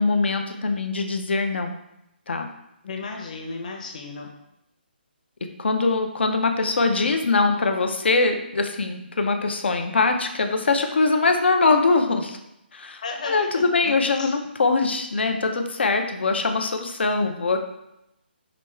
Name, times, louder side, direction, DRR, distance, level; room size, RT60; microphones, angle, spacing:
voice 1, 0.0-1.7 2.3-2.5 5.4-12.4 12.7-17.6, left 3 dB, 80° left, 5 dB, 0.6 m, -22 dB
voice 2, 2.8-4.3 13.0-14.3, left 3 dB, 45° left, 1 dB, 0.8 m, -34 dB
5.0 x 2.3 x 4.3 m, 0.84 s
hypercardioid pair, 170°, 6 cm